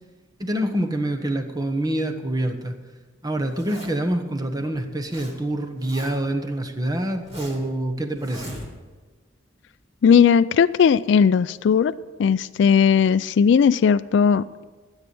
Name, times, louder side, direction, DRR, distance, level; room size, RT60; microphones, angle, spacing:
voice 1, 0.4-2.8 3.2-8.5, right 1 dB, 20° right, 5 dB, 1.1 m, -26 dB
Zipper (clothing), 3.4-4.1 4.7-5.3 5.6-6.3 6.8-7.7 8.2-9.0, right 1 dB, 35° right, 3.5 m, -39 dB
voice 2, 10.0-11.9 12.2-14.6, left 7 dB, 65° left, 14 dB, 0.3 m, -17 dB
13.5 x 8.2 x 6.9 m, 1.3 s
head